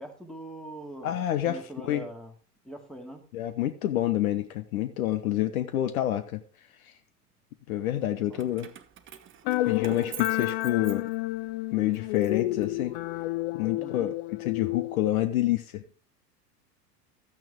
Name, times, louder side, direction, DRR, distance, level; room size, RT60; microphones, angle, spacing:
voice 1, 0.0-2.3 2.6-3.2 8.3-8.6 13.8-14.1, right 1 dB, ahead, 2.4 m, -43 dB
voice 2, 1.0-1.6 1.8-2.0 3.3-6.4 7.7-8.7 9.7-11.1 11.7-13.0 13.5-14.1 14.4-15.8, left 13 dB, 60° left, 1.2 m, -27 dB
Keys jangling, 8.3-11.5 11.9-13.2, right 10 dB, 25° right, 1.1 m, -46 dB
sound 1, 9.5-15.0, left 18 dB, 40° left, 0.4 m, -30 dB
13.5 x 9.0 x 3.6 m
figure-of-eight pair, 90°, 48 cm